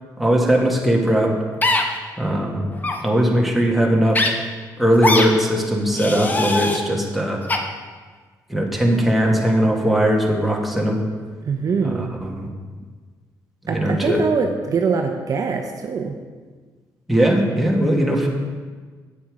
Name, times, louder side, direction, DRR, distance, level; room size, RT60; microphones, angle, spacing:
voice 1, 0.2-1.4 2.2-2.7 3.0-4.3 4.8-7.4 8.5-11.0 11.8-12.5 13.7-14.2 17.1-18.3, equal, ahead, -1 dB, 1.7 m, -19 dB
sound 1, 1.6-1.8 2.8-3.0 4.1-4.3 5.0-5.3 5.9-6.8 7.5-7.6, left 2 dB, 25° left, 1.0 m, -20 dB
voice 2, 11.4-12.2 13.7-16.2, right 5 dB, 45° right, 3 dB, 0.8 m, -23 dB
8.6 x 7.4 x 4.9 m, 1.5 s
cardioid pair, 95°, 8 cm